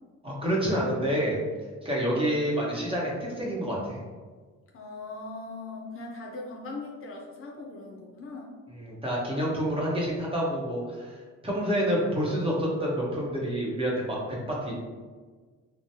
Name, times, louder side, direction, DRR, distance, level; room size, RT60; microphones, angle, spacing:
voice 1, 0.2-1.4 1.8-4.0 8.7-14.2 14.5-14.7, equal, 20° right, -4 dB, 1.0 m, -28 dB
voice 2, 4.7-8.5, left 3 dB, 45° left, -1 dB, 0.5 m, -40 dB
3.1 x 2.1 x 2.7 m, 1.4 s
cardioid pair, 90°, 30 cm